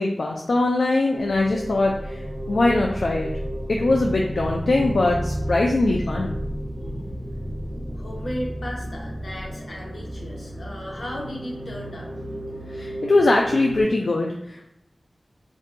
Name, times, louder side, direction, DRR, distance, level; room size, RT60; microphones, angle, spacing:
voice 1, 0.0-3.3 3.7-6.3 12.7-14.7, left 2 dB, 90° left, -1 dB, 0.3 m, -22 dB
sound 1, 1.1-13.8, equal, 25° right, 0.9 m, -32 dB
voice 2, 5.8-6.1 6.8-7.1 7.4-7.6 7.9-12.1, equal, 75° left, -3 dB, 0.9 m, -36 dB
2.6 x 2.2 x 3.7 m, 0.79 s
wide cardioid pair, 70°, 0 cm